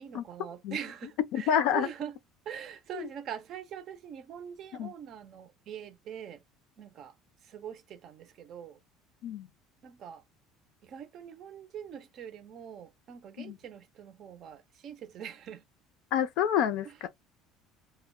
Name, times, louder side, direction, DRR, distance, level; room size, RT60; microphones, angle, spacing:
voice 1, 0.0-2.2 2.5-6.4 6.8-7.1 7.4-8.8 9.8-10.2 10.8-15.6 16.8-17.1, right 8 dB, 40° right, 0.5 m, -43 dB
voice 2, 1.3-1.9 2.9-3.1 4.7-4.9 9.2-9.5 13.4-13.6 16.1-17.1, left 9 dB, 60° left, 0.5 m, -28 dB
2.1 x 2.1 x 3.6 m
cardioid pair, 165°, 0 cm